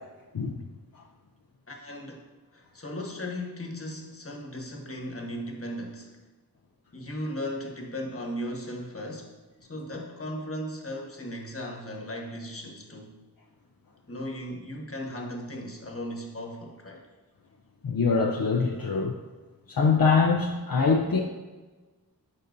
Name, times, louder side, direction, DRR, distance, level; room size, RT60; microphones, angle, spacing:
voice 1, 1.7-2.3 2.5-6.2 6.9-9.3 9.7-13.2 14.1-17.0, equal, 35° left, 1 dB, 1.3 m, -37 dB
voice 2, 17.8-19.1 19.7-21.2, left 4 dB, 60° left, 0 dB, 0.6 m, -23 dB
11.5 x 4.1 x 2.6 m, 1.3 s
wide cardioid pair, 55°, 39 cm